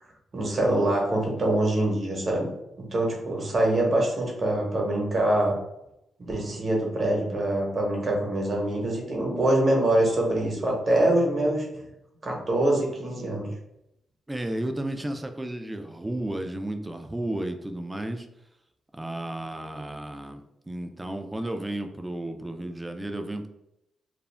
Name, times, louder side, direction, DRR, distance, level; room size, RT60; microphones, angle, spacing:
voice 1, 0.3-2.5 2.9-5.5 6.2-11.6 12.2-13.5, right 1 dB, 45° right, -1 dB, 1.0 m, -24 dB
voice 2, 14.3-18.3 18.9-23.5, right 1 dB, 15° right, 6 dB, 0.4 m, -33 dB
2.4 x 2.0 x 3.2 m, 0.83 s
cardioid pair, 70°, 0 cm